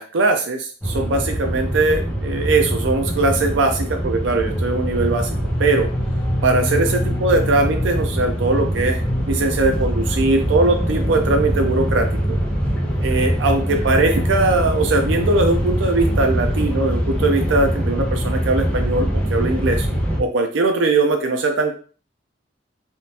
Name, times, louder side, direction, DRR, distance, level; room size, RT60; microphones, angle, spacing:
voice 1, 0.0-5.9 6.4-9.0 9.3-12.1 13.0-19.9 20.2-21.7, right 2 dB, 85° right, 4 dB, 0.5 m, -20 dB
sound 1, 0.8-20.2, equal, 10° left, 0.8 m, -23 dB
3.6 x 2.4 x 2.7 m, 0.40 s
head